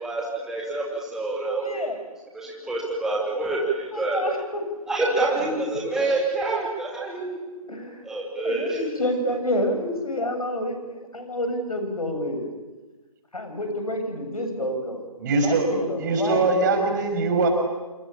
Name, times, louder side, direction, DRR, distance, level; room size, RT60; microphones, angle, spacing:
voice 1, 0.0-1.9 2.3-4.2 4.9-7.4 8.1-8.8, right 2 dB, 5° right, -4 dB, 2.8 m, -27 dB
voice 2, 1.6-2.0 3.9-4.6 5.0-5.6 7.7-8.0 8.4-12.5 13.3-16.5, left 1 dB, 70° left, 6 dB, 7.8 m, -29 dB
voice 3, 15.2-15.7 16.0-17.5, right 3 dB, 30° right, 4 dB, 6.2 m, -22 dB
28.0 x 24.5 x 8.7 m, 1.2 s
figure-of-eight pair, 145°, 19 cm